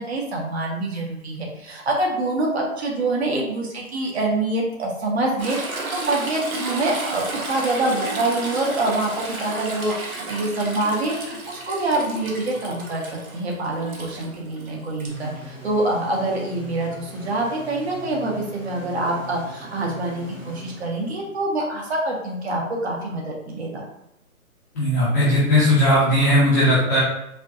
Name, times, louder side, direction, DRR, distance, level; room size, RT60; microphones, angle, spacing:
voice 1, 0.0-23.8, right 2 dB, 45° right, -2 dB, 1.3 m, -25 dB
Toilet flush / Trickle dribble, 5.4-15.1 16.9-17.0, right 2 dB, 75° right, 1.3 m, -33 dB
sound 1, 15.1-21.6, equal, 15° right, 1.1 m, -41 dB
voice 2, 24.7-27.0, left 1 dB, 10° left, -11 dB, 0.6 m, -17 dB
4.9 x 2.8 x 2.4 m, 0.81 s
hypercardioid pair, 150°, 43 cm